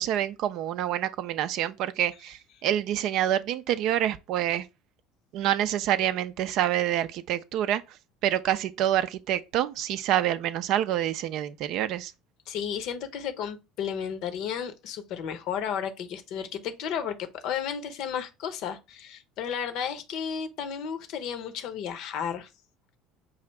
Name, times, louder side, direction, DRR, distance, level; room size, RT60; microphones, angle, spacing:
voice 1, 0.0-4.7 5.3-8.0 8.2-12.1, right 11 dB, 55° right, 0.4 m, -27 dB
voice 2, 12.5-22.5, left 8 dB, 55° left, 0.7 m, -33 dB
5.5 x 2.5 x 3.2 m
figure-of-eight pair, 65°, 0 cm